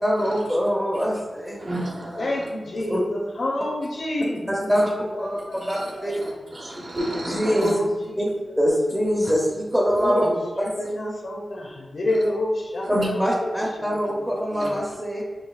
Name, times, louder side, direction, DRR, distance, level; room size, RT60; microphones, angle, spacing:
voice 1, 0.0-1.8 2.9-3.0 4.7-4.9 5.2-5.4 5.7-6.1 7.2-7.8 8.2-8.3 8.6-10.3 12.9-15.2, equal, 10° right, -3 dB, 0.6 m, -23 dB
voice 2, 1.6-2.2 5.5-5.7 6.5-7.7 12.9-13.1 14.6-14.7, right 1 dB, 70° right, -3 dB, 1.0 m, -30 dB
voice 3, 2.2-4.7 5.1-6.2 7.5-8.6 10.0-14.2, left 1 dB, 65° left, -2 dB, 0.7 m, -29 dB
6.2 x 2.7 x 2.3 m, 1.4 s
wide cardioid pair, 115°, 0 cm